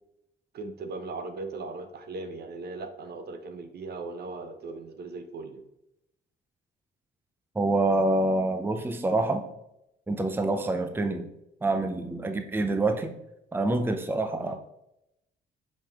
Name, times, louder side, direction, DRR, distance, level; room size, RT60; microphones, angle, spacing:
voice 1, 0.5-5.6 14.4-14.6, right 3 dB, 55° right, 8 dB, 0.8 m, -38 dB
voice 2, 7.6-9.4 10.1-11.3 11.6-13.1 13.5-14.6, right 2 dB, 10° right, 7 dB, 0.6 m, -26 dB
5.7 x 5.1 x 3.5 m, 0.83 s
cardioid pair, 90°, 20 cm